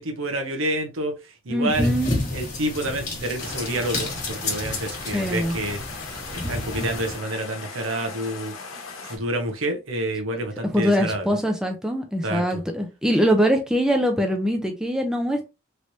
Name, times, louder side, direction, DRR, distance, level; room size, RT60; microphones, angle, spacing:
voice 1, 0.0-1.9 2.3-5.8 6.3-8.5 9.0-11.4 12.2-12.6, right 1 dB, 75° right, 0.8 m, -28 dB
voice 2, 1.5-2.1 5.1-5.5 10.7-15.5, equal, 5° right, 0.5 m, -23 dB
sound 1, 1.7-7.2, left 1 dB, 35° left, 1.4 m, -30 dB
sound 2, 3.4-9.2, left 4 dB, 85° left, 0.9 m, -38 dB
3.2 x 3.0 x 2.6 m
head